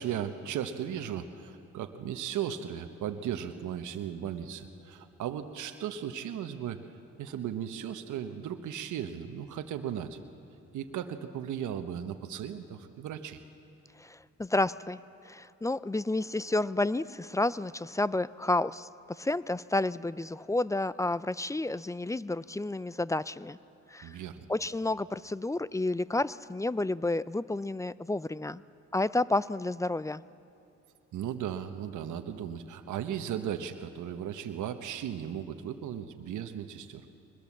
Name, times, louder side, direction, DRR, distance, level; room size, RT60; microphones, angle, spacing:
voice 1, 0.0-6.8 7.2-10.2 10.7-13.4 24.0-24.4 31.1-37.1, right 9 dB, 80° right, 7 dB, 1.1 m, -36 dB
voice 2, 14.0-15.0 15.2-23.6 23.9-24.2 24.5-28.6 28.9-30.2, left 2 dB, 10° left, 18 dB, 0.4 m, -30 dB
22.5 x 21.0 x 7.3 m, 2.7 s
cardioid pair, 70°, 30 cm